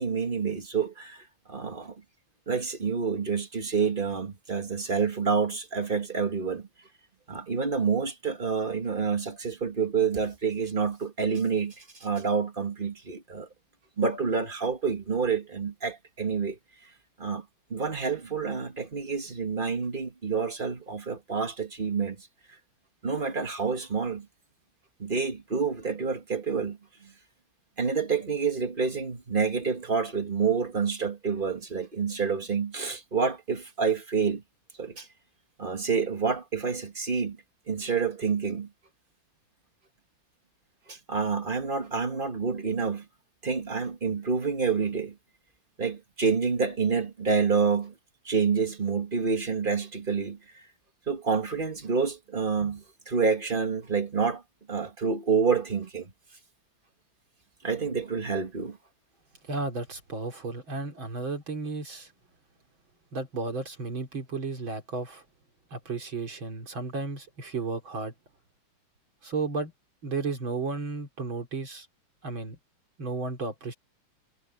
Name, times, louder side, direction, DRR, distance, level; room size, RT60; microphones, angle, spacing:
voice 1, 0.0-1.9 2.5-6.7 7.3-13.5 14.0-16.6 17.2-17.4 17.7-22.3 23.0-24.3 25.0-27.1 27.8-34.4 34.8-35.1 35.6-37.4 37.7-38.7 40.9-43.0 43.4-45.1 45.8-47.9 48.2-50.4 51.1-54.4 54.7-56.1 57.6-58.8, right 5 dB, 25° right, 1.7 m, -28 dB
voice 2, 59.4-62.1 63.1-65.2 65.7-68.1 69.2-69.7 70.0-71.9 72.2-72.6 73.0-73.7, right 3 dB, 65° right, 4.0 m, -33 dB
omnidirectional pair, 2.3 m